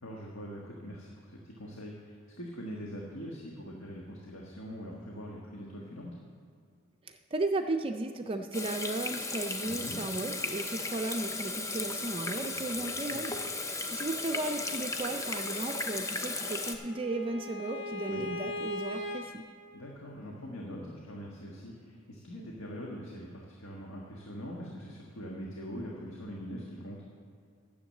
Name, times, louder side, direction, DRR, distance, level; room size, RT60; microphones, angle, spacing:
voice 1, 0.0-6.2 9.6-10.0 12.7-13.2 18.1-18.3 19.7-27.0, equal, 85° left, -2 dB, 1.4 m, -43 dB
voice 2, 7.1-13.3 13.9-19.5, right 2 dB, 25° right, 5 dB, 0.4 m, -35 dB
Water tap faucet / Sink (filling or washing), 8.5-16.8, left 3 dB, 15° left, 0.6 m, -35 dB
Bowed string instrument, 16.1-19.2, left 1 dB, 60° left, 1.7 m, -39 dB
10.0 x 7.1 x 7.6 m, 2.4 s
head